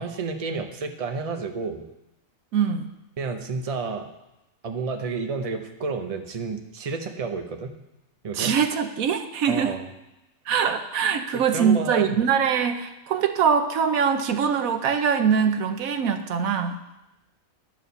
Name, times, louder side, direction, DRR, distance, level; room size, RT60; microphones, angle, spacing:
voice 1, 0.0-1.8 3.2-4.1 4.6-7.8 8.2-8.5 9.5-9.9 11.3-12.2, right 4 dB, 35° right, 6 dB, 0.7 m, -30 dB
voice 2, 2.5-2.9 8.4-9.8 10.5-16.8, right 7 dB, 90° right, 7 dB, 1.2 m, -23 dB
11.0 x 4.8 x 6.8 m, 0.93 s
omnidirectional pair, 1.4 m